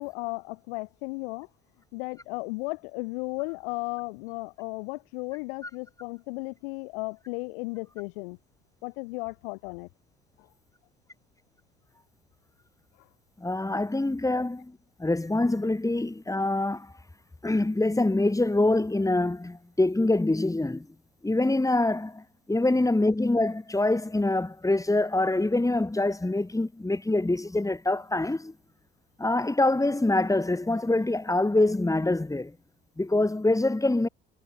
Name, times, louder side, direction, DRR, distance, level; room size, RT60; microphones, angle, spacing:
voice 1, 0.0-1.5 1.9-8.4 8.8-9.9 10.4-10.5 13.0-13.1, left 29 dB, 65° left, 4.0 m, -35 dB
voice 2, 13.4-16.9 17.4-20.9 21.2-28.5 29.2-32.6 33.0-34.1, left 2 dB, 10° left, 7.0 m, -25 dB
figure-of-eight pair, 60°, 31 cm